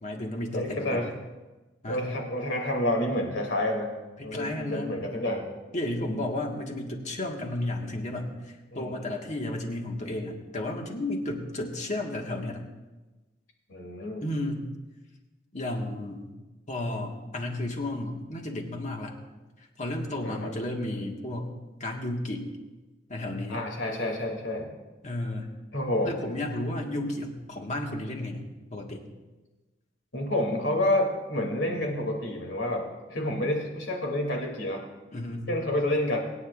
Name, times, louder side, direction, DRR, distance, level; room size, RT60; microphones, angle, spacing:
voice 1, 0.0-1.0 1.8-2.1 4.2-5.0 5.7-12.6 14.2-14.7 15.5-16.3 16.7-19.1 19.8-21.5 21.8-22.5 23.1-23.7 25.0-25.5 26.0-29.1 35.1-35.5, left 1 dB, 40° left, 1 dB, 1.7 m, -33 dB
voice 2, 0.5-1.1 1.9-3.9 4.2-5.5 6.0-6.2 8.7-9.1 13.7-14.2 20.2-20.5 23.5-24.7 25.7-26.1 30.1-34.8 35.5-36.2, left 1 dB, 80° left, 1 dB, 2.8 m, -29 dB
25.5 x 9.7 x 2.5 m, 1.2 s
head